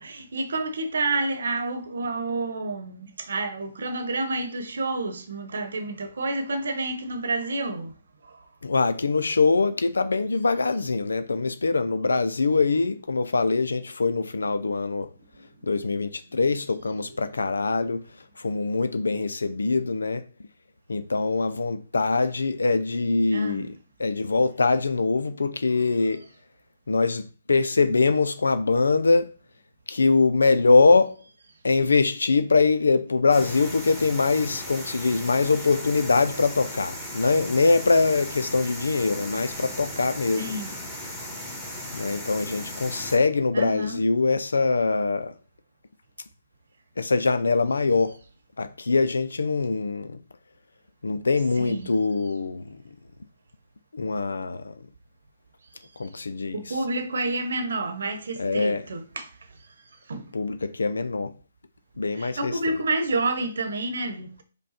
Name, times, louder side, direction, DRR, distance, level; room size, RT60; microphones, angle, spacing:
voice 1, 0.0-7.9 8.2-8.4 15.4-15.5 15.8-15.9 17.0-17.2 23.3-23.7 26.0-26.2 40.4-40.7 43.5-44.1 51.6-52.0 56.5-59.3 59.6-59.7 60.1-60.3 62.1-64.4, right 2 dB, 70° right, 1.0 m, -29 dB
voice 2, 8.6-15.1 15.7-18.0 18.4-20.2 20.9-23.7 24.0-26.2 26.9-29.3 29.9-31.2 31.6-40.5 41.9-45.3 47.0-48.2 48.6-50.2 51.0-52.8 53.9-54.7 56.0-56.6 58.4-58.8 60.3-61.3 62.0-62.5, left 3 dB, 85° left, 0.4 m, -23 dB
sound 1, 33.3-43.2, left 1 dB, 5° left, 1.4 m, -37 dB
5.2 x 2.2 x 4.2 m
hypercardioid pair, 145°, 0 cm